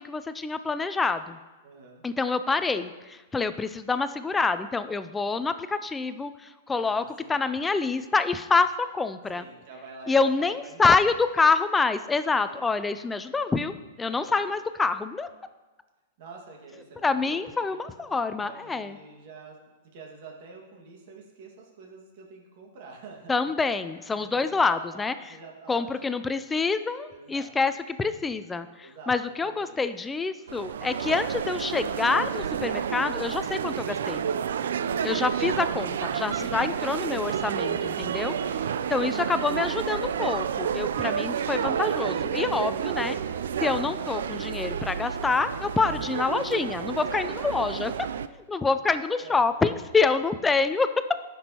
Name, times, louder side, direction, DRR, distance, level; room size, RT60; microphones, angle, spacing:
voice 1, 0.0-1.4 2.0-9.5 10.1-15.3 17.0-19.0 23.3-25.3 25.7-34.2 35.0-43.2 43.6-47.9 48.3-50.9, left 4 dB, 10° left, 11 dB, 0.3 m, -27 dB
voice 2, 1.6-2.0 6.8-7.4 9.3-11.0 12.5-12.7 14.0-14.4 16.2-19.6 19.9-23.5 24.1-26.4 27.1-27.7 28.8-29.8 49.2-49.6, right 4 dB, 50° right, 0 dB, 1.8 m, -47 dB
sound 1, 30.5-48.3, right 8 dB, 85° right, 0.3 m, -30 dB
14.5 x 6.1 x 2.9 m, 1.2 s
hypercardioid pair, 155°, 0 cm